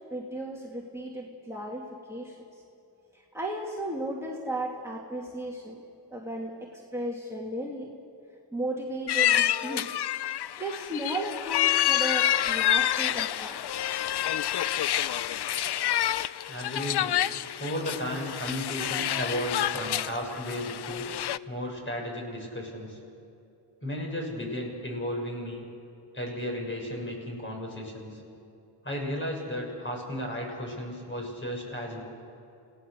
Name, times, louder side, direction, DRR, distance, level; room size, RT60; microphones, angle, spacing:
voice 1, 0.1-2.6 3.1-5.8 6.1-7.9 8.5-9.9 10.3-13.6, right 1 dB, 5° right, -3 dB, 2.5 m, -35 dB
sound 1, 9.1-21.4, left 11 dB, 65° left, 0.6 m, -28 dB
voice 2, 16.5-17.2 17.6-21.1 21.5-23.0 23.8-25.7 26.1-28.2 28.8-32.0, equal, 30° left, 0 dB, 6.5 m, -34 dB
29.0 x 17.5 x 6.7 m, 2.7 s
cardioid pair, 80°, 42 cm